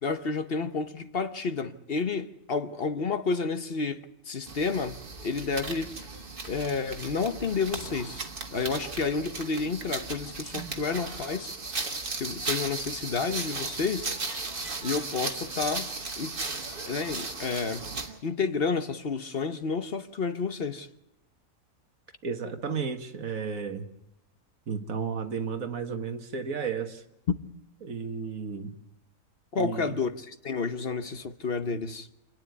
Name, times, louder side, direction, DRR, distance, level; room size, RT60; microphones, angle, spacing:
voice 1, 0.0-5.0 5.2-5.9 6.5-8.3 8.5-11.5 12.2-14.1 14.8-15.9 16.2-16.3 16.9-17.9 18.2-20.9 29.5-32.1, left 4 dB, 50° left, 1.1 m, -30 dB
sound 1, 4.5-18.2, right 3 dB, 40° right, 1.7 m, -36 dB
voice 2, 22.2-23.9 24.7-27.0 27.8-28.7 29.6-29.9, right 6 dB, 85° right, 1.9 m, -33 dB
28.0 x 9.9 x 9.4 m
omnidirectional pair, 1.4 m